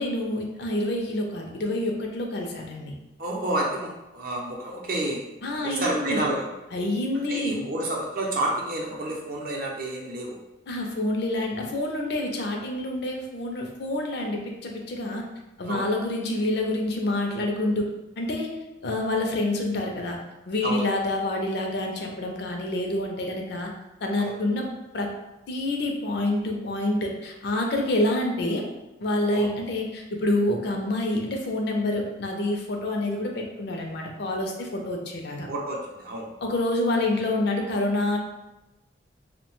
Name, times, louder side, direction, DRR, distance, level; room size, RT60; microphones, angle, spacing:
voice 1, 0.0-2.9 5.4-6.3 6.7-7.5 10.7-15.3 15.6-17.9 18.2-18.6 18.8-20.2 20.5-23.7 24.0-24.7 24.9-25.1 25.5-28.7 29.0-35.5 36.4-38.2, left 1 dB, 55° left, 1 dB, 0.4 m, -27 dB
voice 2, 3.2-5.3 5.6-6.5 7.3-10.4 15.6-15.8 20.6-20.8 24.2-24.3 29.3-29.4 35.5-36.3, right 1 dB, 50° right, -2 dB, 0.5 m, -29 dB
2.6 x 2.1 x 3.0 m, 0.99 s
head